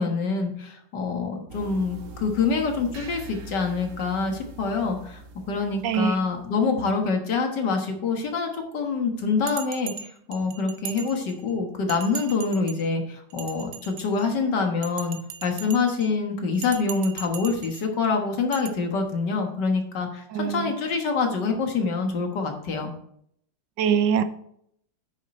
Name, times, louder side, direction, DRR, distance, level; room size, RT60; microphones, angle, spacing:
voice 1, 0.0-5.2 5.5-22.9, left 4 dB, 80° left, 3 dB, 2.1 m, -26 dB
sound 1, 1.5-6.6, right 3 dB, 55° right, 1.1 m, -42 dB
voice 2, 5.8-6.2 20.3-20.8 23.8-24.2, right 7 dB, 85° right, 11 dB, 1.4 m, -23 dB
Bell, 9.5-11.5 11.9-12.9 13.3-14.3 14.8-16.1 16.5-17.9 18.5-18.7, right 9 dB, 70° right, 1.2 m, -39 dB
9.3 x 6.8 x 4.3 m, 0.69 s
omnidirectional pair, 1.8 m